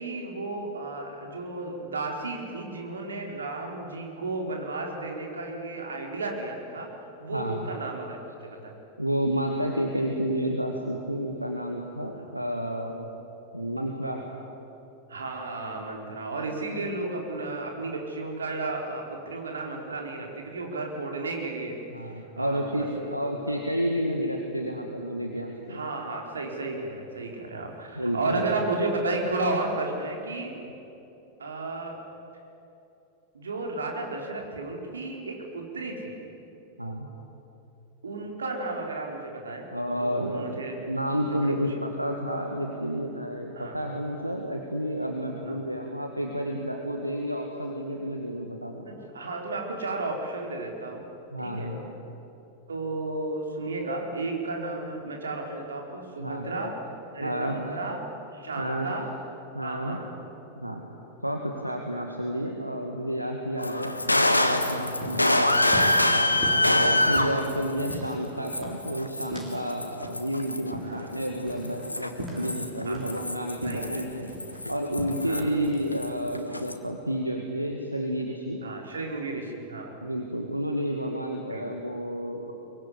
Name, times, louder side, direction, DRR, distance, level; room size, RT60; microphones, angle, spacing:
voice 1, 0.0-6.9 7.2-8.2 8.5-8.8 12.1-12.3 15.1-23.6 25.7-30.6 31.4-32.0 33.3-36.1 38.0-39.7 40.0-40.8 41.2-41.5 43.5-43.8 45.4-45.6 48.8-51.1 51.4-51.8 52.7-56.8 57.1-58.0 58.3-59.1 59.6-60.1 66.4-66.5 70.8-71.1 72.3-72.5 72.8-73.0 73.6-74.1 75.3-75.5 78.6-80.0 81.5-81.7, right 2 dB, 70° right, 1 dB, 4.5 m, -33 dB
voice 2, 7.3-7.7 9.0-13.1 13.5-14.2 21.9-25.8 28.0-28.4 36.8-37.1 39.7-48.9 51.3-51.9 56.2-56.5 57.2-57.6 58.6-58.9 59.5-60.0 60.6-60.8 61.2-65.4 66.1-74.3 74.7-78.6 80.0-82.5, equal, 90° right, 2 dB, 2.1 m, -30 dB
sound 1, 63.6-68.1 68.5-70.7 71.2-75.7 75.9-76.7, left 1 dB, 85° left, 1.4 m, -25 dB
sound 2, 65.0-69.7 70.0-73.3 73.6-75.3 75.7-75.9, right 1 dB, 20° right, 6.5 m, -41 dB
23.5 x 23.5 x 9.9 m, 2.9 s
figure-of-eight pair, 90°, 0 cm